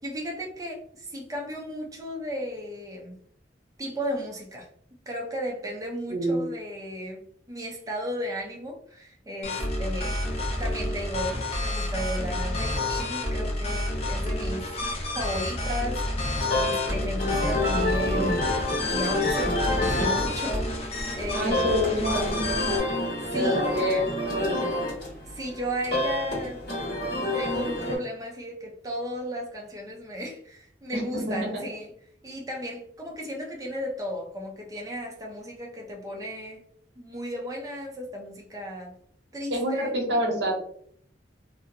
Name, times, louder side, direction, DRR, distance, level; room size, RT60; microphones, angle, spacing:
voice 1, 0.0-3.2 3.8-4.7 5.1-7.2 7.5-14.7 15.1-16.0 16.5-18.4 18.8-20.7 21.1-21.7 23.3-23.7 25.2-26.6 27.1-31.9 32.2-36.6 37.0-38.9 39.3-40.0, equal, 20° right, 0 dB, 0.5 m, -34 dB
voice 2, 6.1-6.4 21.3-22.9 23.3-24.0 24.3-24.8 30.9-31.6 39.5-40.6, equal, 75° right, 0 dB, 0.7 m, -27 dB
sound 1, 9.4-22.8, left 1 dB, 35° left, 0.4 m, -29 dB
sound 2, 16.4-28.0, left 1 dB, 65° left, 1.3 m, -28 dB
2.6 x 2.0 x 2.5 m, 0.64 s
head